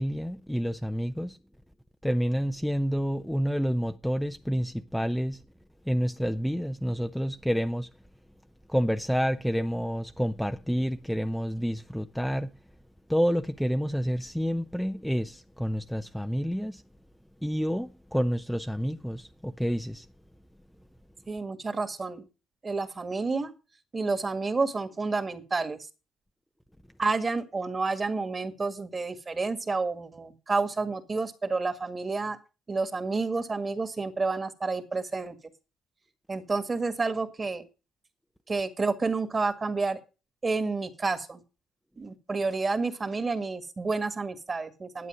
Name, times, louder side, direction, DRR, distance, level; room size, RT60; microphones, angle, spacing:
voice 1, 0.0-1.4 2.0-5.4 5.9-7.9 8.7-12.5 13.1-16.8 17.4-20.1, equal, ahead, 0.6 m, -29 dB
voice 2, 21.3-22.2 22.6-23.5 23.9-25.8 27.0-32.4 32.7-35.4 36.3-37.7 38.5-40.0 40.4-41.4 42.0-45.1, right 3 dB, 25° right, 1.9 m, -30 dB
11.0 x 8.5 x 6.3 m
cardioid pair, 110°, 0 cm